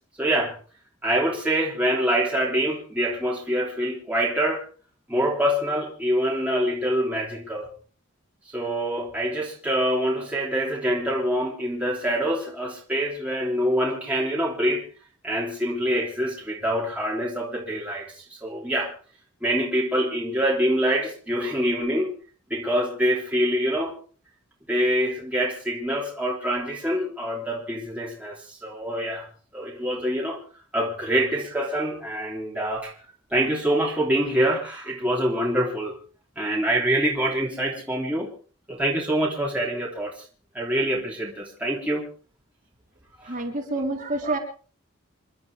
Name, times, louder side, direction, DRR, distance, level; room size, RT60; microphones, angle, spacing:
voice 1, 0.2-0.5 1.0-4.6 5.1-7.7 8.5-14.8 15.2-18.9 19.4-22.1 22.5-24.0 24.7-29.3 29.5-30.4 30.7-32.9 33.3-35.9 36.3-38.3 38.7-40.1 40.5-42.0 43.2-43.3, right 1 dB, 5° right, -4 dB, 3.3 m, -25 dB
voice 2, 43.2-44.4, right 2 dB, 35° right, -1 dB, 3.9 m, -28 dB
28.5 x 12.0 x 3.6 m, 0.41 s
head